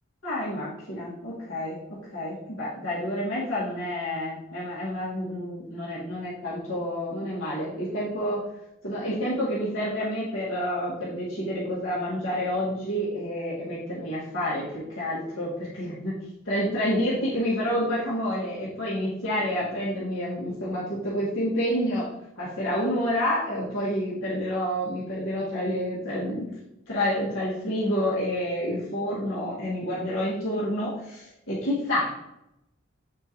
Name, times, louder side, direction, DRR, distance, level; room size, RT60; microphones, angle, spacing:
voice 1, 0.2-8.4 8.8-16.1 16.5-22.1 22.4-26.5 26.9-32.1, equal, 80° left, -8 dB, 2.2 m, -29 dB
7.6 x 4.7 x 3.1 m, 0.83 s
head